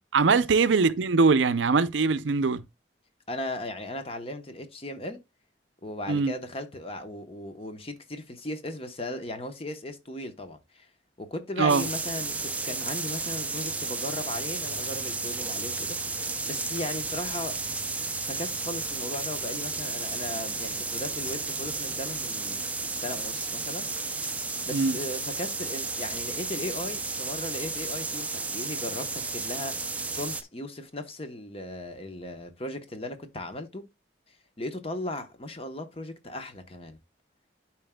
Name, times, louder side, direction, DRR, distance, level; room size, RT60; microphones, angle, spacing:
voice 1, 0.1-2.6 6.1-6.3 11.6-11.8 24.7-25.0, right 4 dB, 80° right, 0.6 m, -22 dB
voice 2, 3.3-5.2 5.8-10.9 11.2-17.6 18.2-23.9 24.6-33.8 34.3-37.0, left 1 dB, 30° left, 1.0 m, -37 dB
sound 1, 11.7-30.4, right 3 dB, 10° right, 0.4 m, -33 dB
11.0 x 4.5 x 2.2 m
head